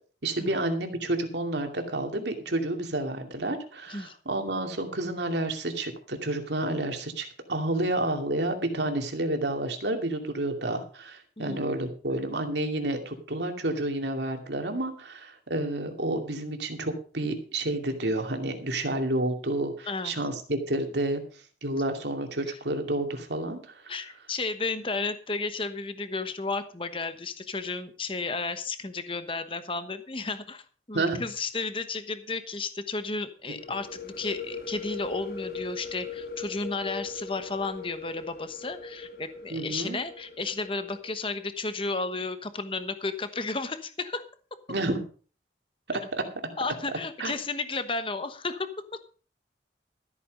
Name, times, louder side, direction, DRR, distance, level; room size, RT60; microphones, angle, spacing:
voice 1, 0.2-21.2 21.6-23.7 30.9-31.2 39.5-40.0 44.7-45.0 45.9-46.2 47.2-47.3, right 1 dB, 80° right, 5 dB, 2.5 m, -30 dB
voice 2, 19.9-20.2 22.5-22.6 23.9-30.6 30.9-44.2 46.6-49.0, left 3 dB, 30° left, 10 dB, 1.1 m, -33 dB
sound 1, 33.6-41.2, left 5 dB, 55° left, 1.5 m, -40 dB
14.0 x 8.7 x 5.3 m, 0.39 s
head